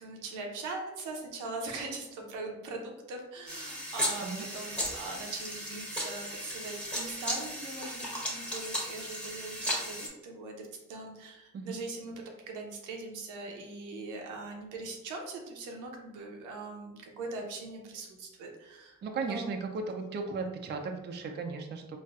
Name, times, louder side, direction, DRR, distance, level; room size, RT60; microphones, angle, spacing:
voice 1, 0.0-19.5, right 3 dB, 85° right, 1 dB, 0.7 m, -41 dB
sound 1, 3.5-10.1, equal, 5° left, 1.1 m, -36 dB
voice 2, 19.0-22.0, right 4 dB, 35° right, 4 dB, 0.4 m, -36 dB
4.0 x 2.2 x 2.3 m, 0.97 s
cardioid pair, 90°, 30 cm